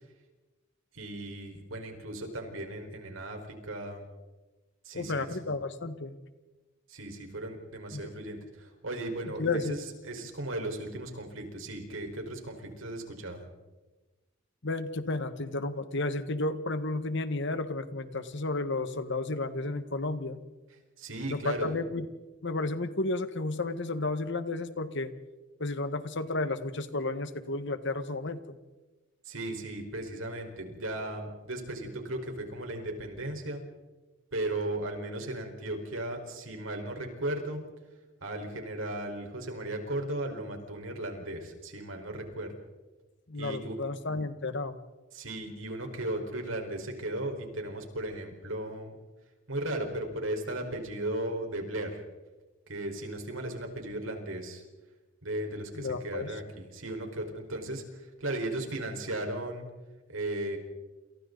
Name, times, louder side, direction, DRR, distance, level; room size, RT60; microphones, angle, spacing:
voice 1, 0.9-4.0 4.8-5.3 6.9-13.5 21.0-21.7 29.2-33.6 34.3-37.6 38.2-42.5 43.3-43.8 45.1-48.9 49.5-52.0 52.7-54.6 55.2-59.6 60.1-60.6, right 1 dB, 90° right, 3 dB, 4.9 m, -36 dB
voice 2, 4.9-6.1 7.9-8.1 9.2-9.8 14.6-20.4 21.3-22.0 22.4-25.1 25.6-28.6 43.3-44.8 55.7-56.4, left 2 dB, 65° left, 10 dB, 1.6 m, -32 dB
28.5 x 28.5 x 4.1 m, 1.2 s
head